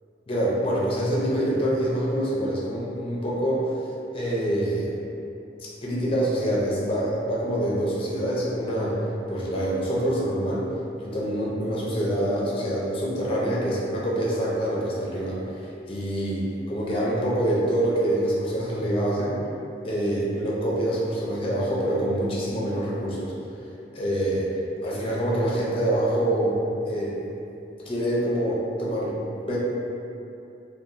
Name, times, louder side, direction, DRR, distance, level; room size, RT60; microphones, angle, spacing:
voice 1, 0.3-3.7 4.1-4.9 5.8-9.0 9.3-10.7 11.0-15.4 15.9-19.4 19.8-23.3 23.9-24.5 24.8-26.6 26.9-27.1 27.9-29.6, right 1 dB, 30° left, -6 dB, 0.5 m, -25 dB
2.9 x 2.2 x 2.5 m, 2.7 s
head